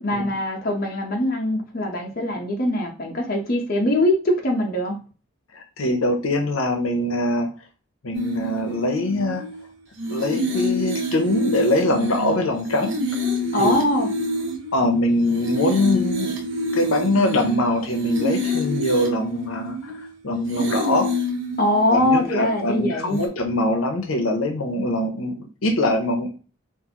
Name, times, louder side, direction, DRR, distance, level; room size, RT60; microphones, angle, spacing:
voice 1, 0.0-5.0 13.5-14.1 21.6-23.2, left 1 dB, 45° left, 0 dB, 0.8 m, -22 dB
voice 2, 5.5-7.5 8.0-9.4 10.1-12.9 13.6-13.9 14.7-16.3 16.7-19.9 20.2-21.1 21.9-26.3, left 1 dB, 90° left, 4 dB, 0.7 m, -23 dB
sound 1, 8.1-9.6 10.0-14.9 15.2-20.1 20.5-22.7 23.1-23.3, equal, 65° right, 0.8 m, -27 dB
3.8 x 2.6 x 2.9 m, 0.36 s
head